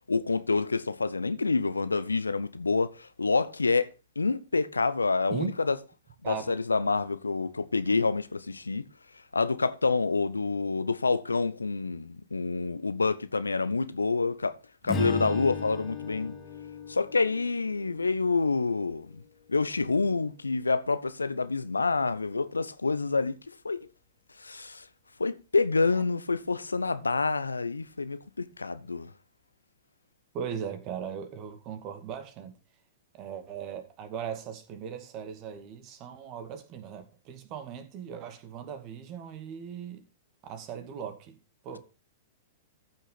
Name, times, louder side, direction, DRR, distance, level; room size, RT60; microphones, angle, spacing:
voice 1, 0.1-5.8 6.2-8.9 9.3-14.6 14.8-16.3 16.9-19.2 19.5-23.4 23.6-23.9 24.4-24.9 25.2-29.1, left 4 dB, 85° left, 0.7 m, -27 dB
voice 2, 6.2-6.5 30.3-32.5 33.1-40.1 40.4-41.4 41.6-41.8, right 8 dB, 40° right, 2.2 m, -38 dB
Strum, 14.8-19.3, left 2 dB, 25° left, 2.7 m, -37 dB
14.0 x 6.4 x 4.1 m
figure-of-eight pair, 105°, 0 cm